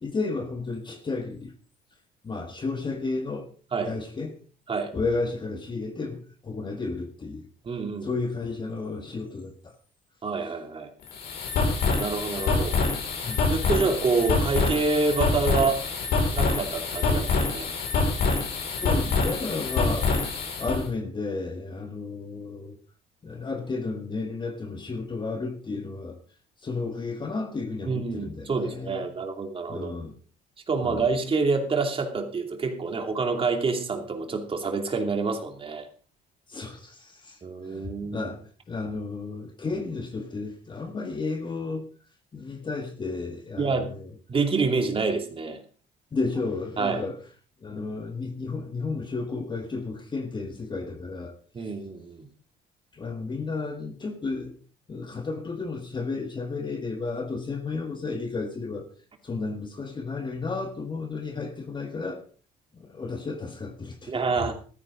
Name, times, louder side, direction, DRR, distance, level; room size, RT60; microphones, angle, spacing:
voice 1, 0.0-1.5 2.2-3.5 3.8-4.4 4.9-7.5 8.0-9.8 13.2-13.4 18.7-20.1 20.6-22.8 23.2-26.2 26.6-29.1 29.7-30.2 30.8-31.1 36.5-41.9 42.3-44.1 46.1-47.2 47.6-51.7 52.9-54.6 54.9-58.9 59.2-62.2 62.7-64.5, left 3 dB, 25° left, 1.6 m, -33 dB
voice 2, 7.6-8.1 10.2-10.9 12.0-12.8 13.5-15.8 16.3-17.7 27.9-29.9 30.7-35.9 37.4-38.3 43.6-43.9 44.3-45.6 46.8-47.0 51.5-52.3 64.1-64.5, right 4 dB, 35° right, 2.6 m, -27 dB
sound 1, 11.0-20.8, left 4 dB, 75° left, 5.6 m, -26 dB
14.0 x 13.5 x 3.9 m
cardioid pair, 110°, 17 cm